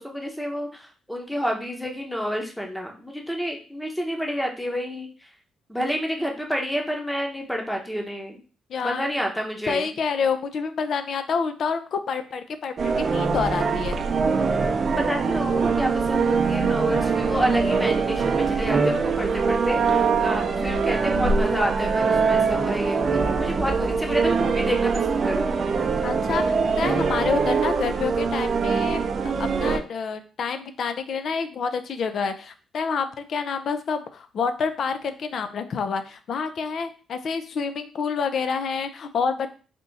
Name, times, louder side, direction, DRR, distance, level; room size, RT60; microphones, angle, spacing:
voice 1, 0.0-5.3 5.7-8.4 8.8-9.9 15.0-25.5, equal, 5° left, 1 dB, 0.9 m, -29 dB
voice 2, 8.7-9.1 9.7-14.0 26.0-39.5, left 5 dB, 60° left, 9 dB, 0.5 m, -28 dB
sound 1, 12.8-29.8, right 5 dB, 45° right, 0.6 m, -23 dB
3.5 x 2.7 x 4.0 m, 0.37 s
cardioid pair, 90°, 0 cm